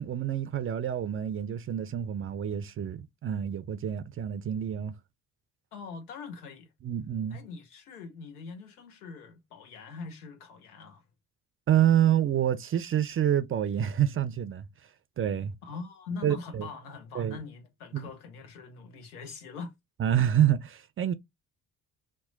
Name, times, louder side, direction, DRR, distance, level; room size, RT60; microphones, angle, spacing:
voice 1, 0.0-4.9 6.8-7.4 11.7-14.6 15.2-15.5 16.2-16.7 17.1-17.4 17.9-18.0 20.0-21.1, right 10 dB, 30° right, 0.4 m, -27 dB
voice 2, 5.7-6.7 7.3-11.0 15.6-19.7, left 4 dB, 85° left, 0.7 m, -42 dB
2.9 x 2.1 x 3.7 m
figure-of-eight pair, 45°, 44 cm